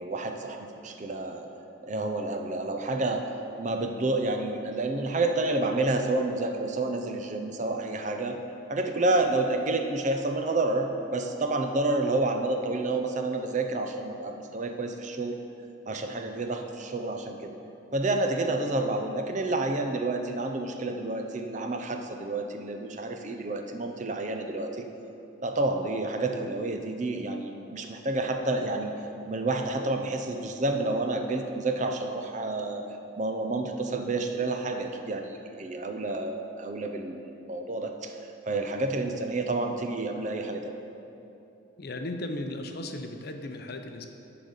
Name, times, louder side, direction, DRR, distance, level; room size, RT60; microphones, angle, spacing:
voice 1, 0.0-1.5 1.8-3.2 3.6-8.4 8.7-15.4 15.9-17.5 17.9-24.8 25.4-28.9 29.3-32.8 33.2-37.2 37.5-38.1 38.5-40.7, right 2 dB, 35° right, 4 dB, 0.5 m, -29 dB
voice 2, 41.8-44.1, left 1 dB, 50° left, 5 dB, 0.6 m, -36 dB
12.0 x 4.0 x 6.5 m, 2.9 s
head